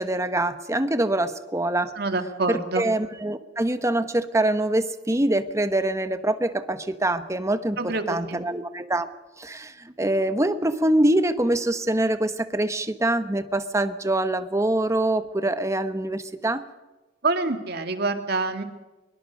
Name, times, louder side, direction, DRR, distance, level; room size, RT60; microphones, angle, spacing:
voice 1, 0.0-1.9 2.5-9.1 9.4-16.6, right 1 dB, 15° right, 10 dB, 1.1 m, -24 dB
voice 2, 2.0-2.9 7.8-8.4 17.2-18.6, right 3 dB, 60° right, 6 dB, 2.1 m, -26 dB
23.0 x 22.5 x 5.2 m, 1.1 s
head